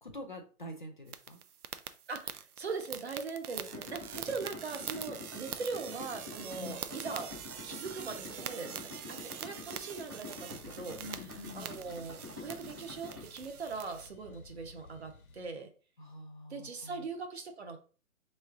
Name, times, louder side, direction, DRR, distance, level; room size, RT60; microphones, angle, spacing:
voice 1, 0.0-1.4 6.5-6.8 11.0-11.8 16.0-17.1, left 2 dB, 35° left, 2 dB, 0.5 m, -46 dB
sound 1, 1.1-14.1, right 9 dB, 85° right, 0.6 m, -45 dB
voice 2, 2.1-7.4 7.6-11.0 11.5-15.7 16.5-17.8, right 4 dB, 50° right, 5 dB, 0.8 m, -41 dB
Idling, 3.7-13.3, left 2 dB, 15° right, 0.6 m, -47 dB
sound 2, 10.5-15.5, left 3 dB, 75° left, 1.1 m, -56 dB
3.7 x 3.2 x 3.6 m, 0.37 s
hypercardioid pair, 170°, 43 cm